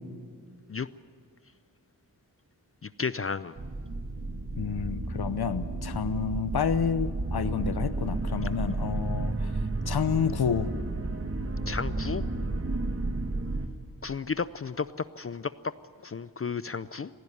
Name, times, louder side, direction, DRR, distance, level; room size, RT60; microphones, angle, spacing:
voice 1, 3.0-3.5 11.7-12.2 14.0-14.9 15.2-15.5 16.0-17.1, left 5 dB, 35° left, 15 dB, 0.5 m, -32 dB
sound 1, 3.6-13.7, right 2 dB, 35° right, 1.5 m, -32 dB
voice 2, 4.6-9.5 9.9-10.7, left 6 dB, 75° left, 12 dB, 0.9 m, -29 dB
18.0 x 15.5 x 10.0 m, 2.1 s
wide cardioid pair, 65°, 38 cm